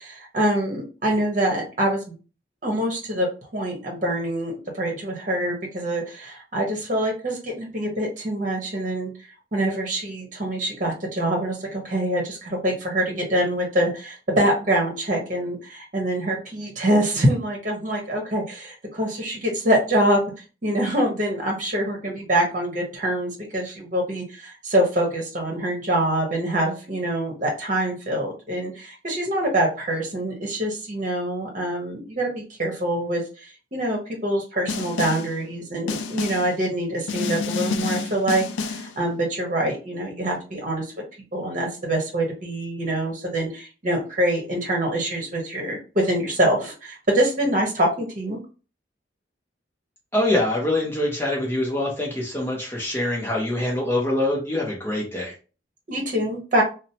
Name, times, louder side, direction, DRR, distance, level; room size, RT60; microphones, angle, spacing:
voice 1, 0.0-2.1 2.6-3.3 3.5-9.1 9.5-20.2 20.6-40.9 41.3-48.4 55.9-56.6, right 1 dB, 40° right, 1 dB, 0.9 m, -25 dB
Snare drum, 34.7-35.4 35.9-36.6 37.1-39.0, left 4 dB, 75° left, 0.3 m, -28 dB
voice 2, 50.1-55.3, left 1 dB, 10° left, -3 dB, 0.6 m, -24 dB
2.8 x 2.0 x 2.7 m, 0.33 s
head